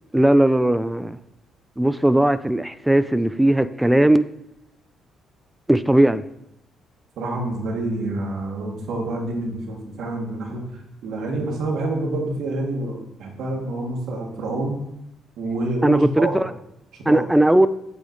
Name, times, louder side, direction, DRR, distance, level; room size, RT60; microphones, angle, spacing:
voice 1, 0.1-1.2 1.8-4.2 5.7-6.2 15.8-16.5 17.1-17.7, right 1 dB, 10° right, 14 dB, 0.3 m, -18 dB
voice 2, 7.2-10.6 11.0-14.8 15.4-16.4 17.1-17.3, right 2 dB, 70° right, 1 dB, 1.5 m, -27 dB
8.5 x 4.9 x 2.6 m, 0.82 s
supercardioid pair, 60°, 0 cm